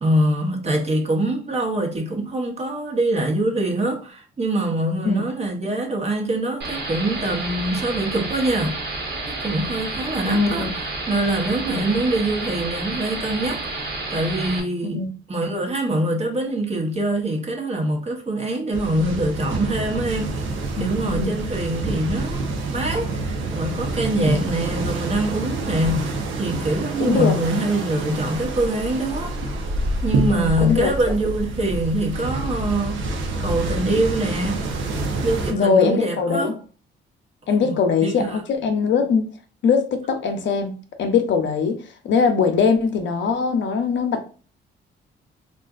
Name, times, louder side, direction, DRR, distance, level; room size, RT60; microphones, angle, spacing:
voice 1, 0.0-8.8 9.3-15.0 15.3-22.4 22.7-29.6 30.0-34.7 35.2-36.6 37.6-38.4, right 1 dB, 30° right, 0.9 m, -24 dB
sound 1, 6.6-14.6, right 2 dB, 60° right, 1.2 m, -30 dB
sound 2, 7.5-12.9, right 1 dB, 30° left, 0.6 m, -46 dB
voice 2, 10.2-10.7 11.7-11.9 14.8-15.1 20.8-21.4 24.2-24.4 27.0-27.3 30.3-30.9 35.5-36.5 37.5-39.3 39.6-40.7 41.0-41.8 42.0-44.3, left 5 dB, 65° left, 0.7 m, -21 dB
sound 3, 18.7-35.5, right 2 dB, 80° right, 0.7 m, -27 dB
3.6 x 2.5 x 2.4 m
cardioid pair, 90°, 20 cm